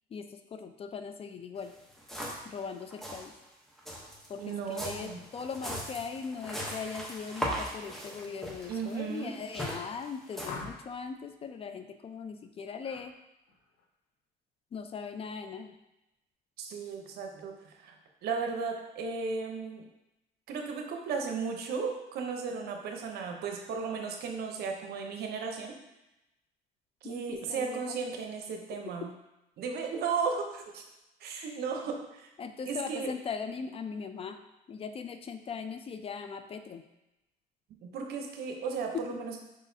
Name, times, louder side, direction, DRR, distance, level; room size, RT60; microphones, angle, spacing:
voice 1, 0.1-1.7 2.4-3.3 4.3-13.1 14.7-15.8 27.0-28.0 28.7-29.1 31.5-31.6 32.4-34.4 34.7-36.8 38.9-39.2, left 6 dB, 35° left, 8 dB, 0.4 m, -40 dB
sound 1, 1.6-1.7 1.9-2.5 2.8-3.2 3.8-10.5, equal, ahead, 0.9 m, -39 dB
voice 2, 4.4-5.2 8.7-9.3 16.6-17.9 18.2-19.8 20.5-25.7 27.0-29.1 29.6-30.8 31.2-32.3 32.7-33.1 37.8-39.4, right 5 dB, 70° right, 3 dB, 0.8 m, -35 dB
sound 2, 10.4-11.1 12.8-13.1 13.5-13.9, left 4 dB, 80° left, 0.7 m, -43 dB
4.9 x 4.0 x 2.7 m, 0.93 s
cardioid pair, 110°, 17 cm